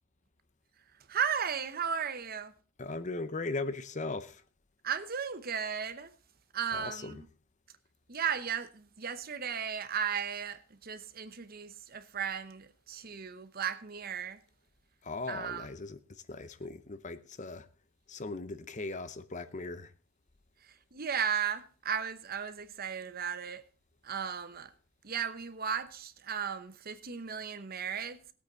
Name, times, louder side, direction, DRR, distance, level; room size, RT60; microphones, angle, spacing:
voice 1, 1.1-2.5 4.8-6.1 6.5-7.3 8.1-14.4 15.3-15.7 20.9-23.6 24.0-24.7 25.0-28.2, right 7 dB, 50° right, 0.9 m, -35 dB
voice 2, 2.8-4.4 6.7-7.2 15.0-17.7 18.1-19.9, left 3 dB, 40° left, 0.8 m, -38 dB
18.5 x 8.4 x 4.0 m
head